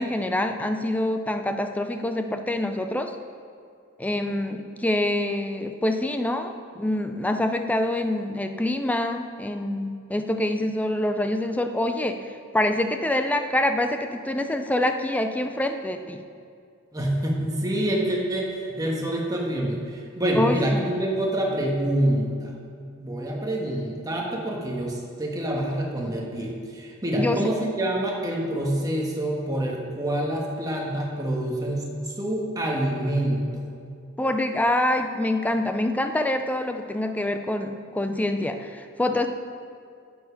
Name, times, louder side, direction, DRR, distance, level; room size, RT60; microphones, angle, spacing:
voice 1, 0.0-3.2 4.0-16.2 20.3-20.8 27.2-27.4 34.2-39.3, left 1 dB, 5° left, 7 dB, 0.4 m, -26 dB
voice 2, 16.9-22.5 23.0-33.6, right 1 dB, 20° right, -2 dB, 1.4 m, -26 dB
9.2 x 7.1 x 5.2 m, 2.3 s
head